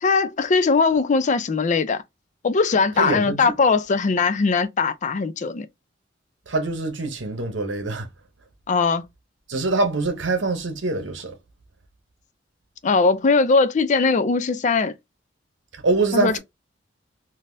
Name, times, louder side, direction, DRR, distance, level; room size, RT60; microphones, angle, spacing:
voice 1, 0.0-2.0 2.4-5.7 8.7-9.0 12.8-14.9 16.1-16.4, left 4 dB, 40° left, 0.4 m, -20 dB
voice 2, 3.0-3.5 6.5-8.1 9.5-11.3 15.7-16.4, right 3 dB, 70° right, 0.8 m, -24 dB
3.5 x 2.7 x 2.6 m
head